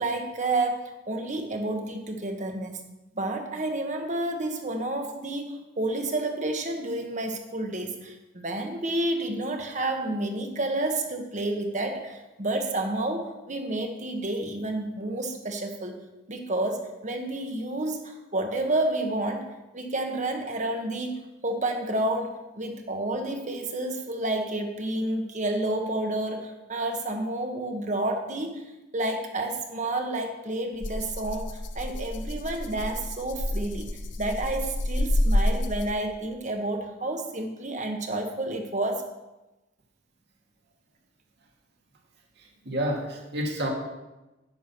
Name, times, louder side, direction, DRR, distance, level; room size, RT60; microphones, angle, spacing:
voice 1, 0.0-2.8 3.1-16.0 16.3-28.6 28.9-33.9 34.2-39.1, right 2 dB, 40° right, 4 dB, 1.5 m, -30 dB
Rattle (instrument), 30.8-36.1, left 1 dB, 65° left, 1.0 m, -28 dB
voice 2, 42.4-43.7, right 1 dB, 55° right, 0 dB, 2.3 m, -30 dB
10.5 x 9.0 x 5.9 m, 1.0 s
head